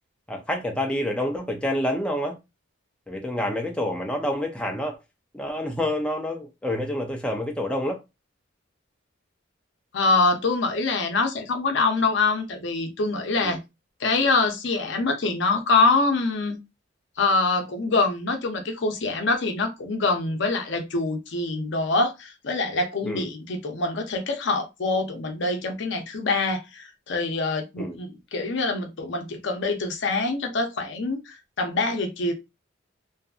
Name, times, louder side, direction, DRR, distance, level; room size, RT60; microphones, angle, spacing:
voice 1, 0.3-2.4 3.1-5.0 5.3-8.0 13.4-13.6 23.0-23.3 27.8-28.0, left 1 dB, 5° left, 0.4 m, -28 dB
voice 2, 9.9-13.6 14.0-16.6 17.2-32.3, left 3 dB, 65° left, 0.6 m, -25 dB
2.6 x 2.5 x 2.3 m
head